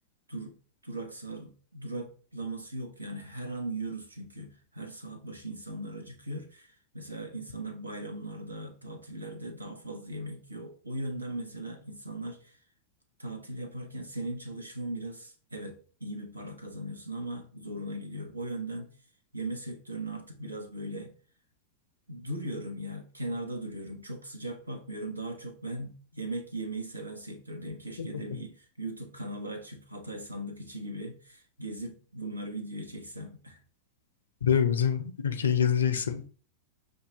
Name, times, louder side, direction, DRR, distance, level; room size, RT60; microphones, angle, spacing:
voice 1, 0.8-12.6 13.2-19.0 19.3-21.1 22.1-33.6 35.4-35.5, right 1 dB, 80° right, 0.7 m, -38 dB
voice 2, 34.4-36.2, left 8 dB, 70° left, 0.5 m, -25 dB
6.4 x 2.2 x 2.8 m
figure-of-eight pair, 90°, 0 cm